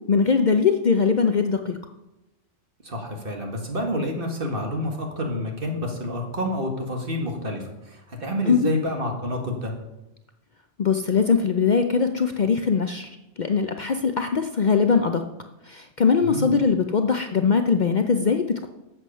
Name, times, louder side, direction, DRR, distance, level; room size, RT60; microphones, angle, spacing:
voice 1, 0.1-1.8 8.5-8.7 10.8-13.1 13.4-15.2 15.7-18.7, left 5 dB, 50° left, 6 dB, 0.6 m, -21 dB
voice 2, 2.8-9.7 16.2-16.5, equal, 50° right, 2 dB, 1.9 m, -28 dB
12.5 x 7.8 x 5.5 m, 0.97 s
omnidirectional pair, 1.2 m